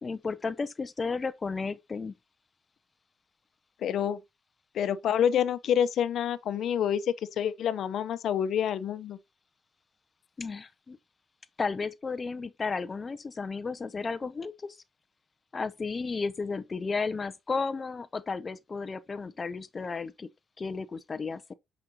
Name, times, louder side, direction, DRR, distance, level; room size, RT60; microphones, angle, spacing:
voice 1, 0.0-2.2 10.4-11.0 11.6-14.8 15.5-20.3 20.6-21.5, left 4 dB, 35° left, 0.5 m, -33 dB
voice 2, 3.8-4.2 4.7-7.0 7.4-9.2, left 9 dB, 70° left, 0.8 m, -27 dB
8.4 x 5.1 x 2.9 m
cardioid pair, 90°, 0 cm